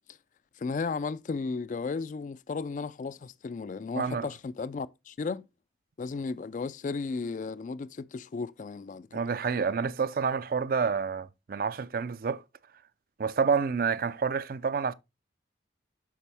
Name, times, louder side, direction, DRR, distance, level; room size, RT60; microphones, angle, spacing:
voice 1, 0.6-5.5 6.0-9.2, left 4 dB, 40° left, 0.3 m, -34 dB
voice 2, 3.9-4.2 9.1-12.4 13.2-14.9, right 5 dB, 50° right, 0.4 m, -28 dB
8.5 x 6.0 x 3.4 m
head